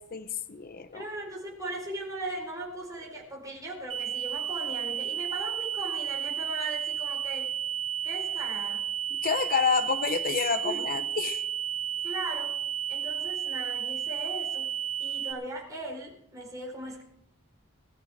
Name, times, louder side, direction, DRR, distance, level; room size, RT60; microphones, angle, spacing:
voice 1, 0.0-1.0 9.1-11.4, left 5 dB, 45° left, 10 dB, 0.8 m, -29 dB
voice 2, 0.9-7.4 8.0-8.8 10.6-10.8 12.0-12.5 12.9-14.7 15.0-17.0, right 1 dB, 15° right, -3 dB, 4.5 m, -38 dB
sound 1, 3.9-15.3, right 9 dB, 65° right, 1.9 m, -32 dB
20.0 x 13.0 x 3.6 m, 0.74 s
head